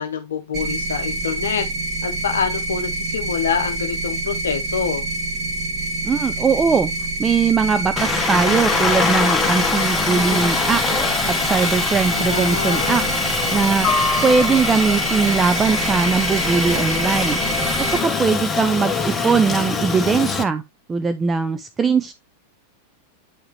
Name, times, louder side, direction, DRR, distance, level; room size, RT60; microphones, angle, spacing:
voice 1, 0.0-1.7 2.0-5.1 12.1-13.1, left 7 dB, 65° left, 0.8 m, -26 dB
sound 1, 0.5-18.0, right 2 dB, 35° right, 3.0 m, -26 dB
voice 2, 6.0-6.9 7.2-10.8 11.3-13.0 13.5-13.9 14.2-17.4 17.9-20.6 20.9-22.1, right 5 dB, 20° right, 0.5 m, -20 dB
Aircraft, 8.0-20.4, left 4 dB, 15° left, 1.1 m, -23 dB
8.6 x 4.7 x 3.1 m
figure-of-eight pair, 90°, 0 cm